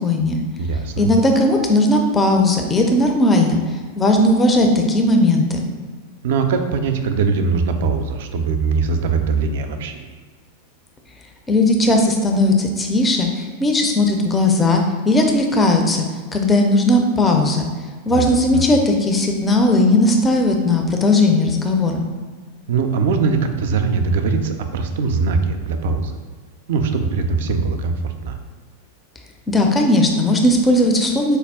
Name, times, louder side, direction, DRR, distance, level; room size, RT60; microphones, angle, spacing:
voice 1, 0.0-0.4 1.0-3.6 4.0-5.6 11.5-16.0 16.3-17.7 18.1-22.0 29.5-31.4, left 1 dB, 15° left, 2 dB, 0.4 m, -17 dB
voice 2, 0.6-1.1 6.2-10.1 18.1-18.6 22.7-26.1 26.7-28.4, right 4 dB, 55° right, 7 dB, 0.3 m, -21 dB
4.2 x 2.2 x 3.3 m, 1.5 s
figure-of-eight pair, 90°, 0 cm